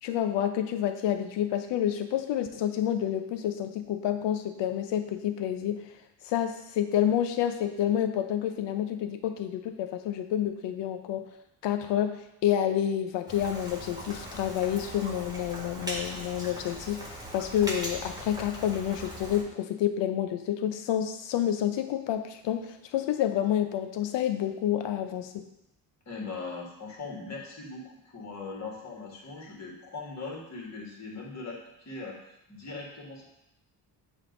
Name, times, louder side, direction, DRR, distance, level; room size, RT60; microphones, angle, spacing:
voice 1, 0.0-5.8 6.2-11.2 11.6-25.4, left 10 dB, 75° left, 7 dB, 0.8 m, -29 dB
Rain, 13.3-19.4, equal, 10° right, 1.7 m, -40 dB
voice 2, 26.1-32.2 32.5-33.2, left 3 dB, 40° left, -2 dB, 2.1 m, -40 dB
7.2 x 2.7 x 5.3 m, 0.83 s
cardioid pair, 85°, 43 cm